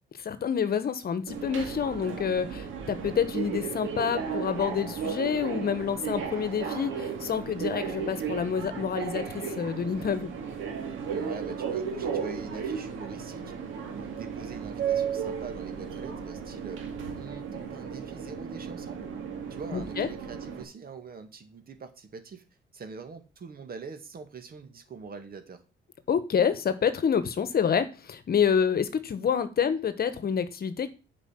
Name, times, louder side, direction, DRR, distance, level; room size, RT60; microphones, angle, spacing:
voice 1, 0.2-10.3 19.7-20.1 26.1-30.9, left 7 dB, 50° left, 12 dB, 1.2 m, -28 dB
Subway metro underground, 1.3-20.6, right 7 dB, 80° right, 2.2 m, -34 dB
voice 2, 11.1-13.5 13.9-16.8 17.1-19.1 19.5-22.4 22.7-25.6, right 5 dB, 50° right, 8 dB, 1.9 m, -43 dB
8.3 x 5.2 x 7.5 m, 0.32 s
cardioid pair, 90°, 20 cm